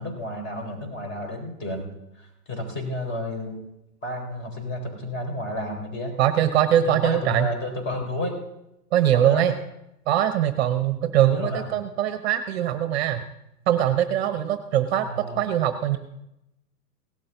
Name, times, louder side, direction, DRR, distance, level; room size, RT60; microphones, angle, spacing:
voice 1, 0.0-1.9 2.2-3.6 4.0-6.1 6.8-8.4 9.1-9.5 11.3-11.7 15.0-15.5, left 1 dB, 25° left, 3 dB, 4.2 m, -31 dB
voice 2, 6.2-7.5 8.9-9.5 10.1-13.3 13.7-16.0, right 11 dB, 40° right, 10 dB, 1.0 m, -22 dB
17.5 x 12.0 x 3.9 m, 0.87 s
figure-of-eight pair, 115°, 47 cm